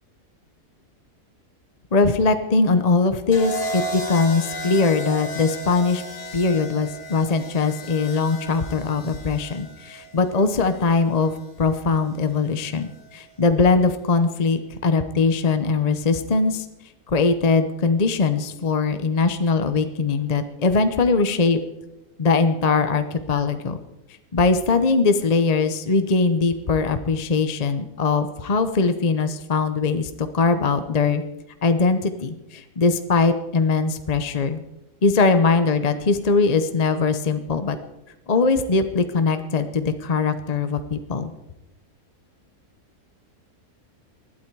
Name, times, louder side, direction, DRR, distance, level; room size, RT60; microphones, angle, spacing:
voice 1, 1.9-6.0 6.3-16.6 17.1-21.6 22.2-23.8 24.3-31.2 31.6-34.6 35.0-37.8 38.3-41.3, left 4 dB, 35° left, 9 dB, 0.7 m, -21 dB
sound 1, 3.3-11.4 12.7-13.0, equal, 50° left, 2.6 m, -34 dB
20.5 x 12.5 x 4.7 m, 0.94 s
omnidirectional pair, 1.7 m